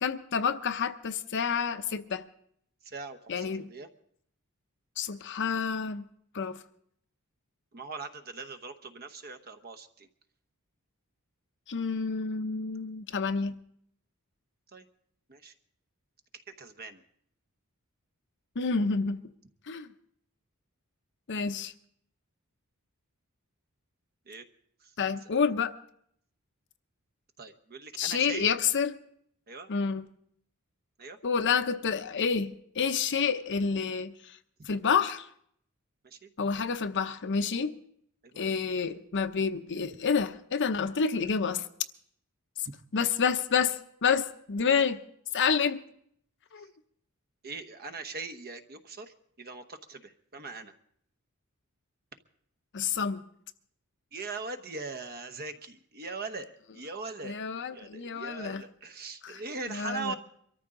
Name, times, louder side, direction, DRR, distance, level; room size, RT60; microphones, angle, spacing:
voice 1, 0.0-2.2 3.3-3.7 5.0-6.1 6.3-6.6 11.7-13.6 18.6-19.2 19.7-19.9 21.3-21.7 25.0-25.7 28.0-28.9 29.7-30.1 31.2-34.1 34.7-35.3 36.4-37.7 38.4-41.6 42.9-43.8 44.0-45.0 45.3-45.8 46.5-46.7 52.7-53.2 57.2-58.6 59.2-59.4 59.7-60.1, left 6 dB, 55° left, 0.8 m, -28 dB
voice 2, 2.8-3.9 7.7-10.1 14.7-14.8 15.3-15.5 16.3-17.0 24.3-24.5 24.8-24.9 25.2-25.3 27.4-28.5 29.5-29.7 31.0-31.2 36.0-36.3 38.2-38.4 44.7-44.8 46.6-46.7 47.4-50.7 54.1-57.4 57.7-60.2, right 4 dB, 45° right, 1.0 m, -41 dB
23.5 x 13.5 x 3.8 m
head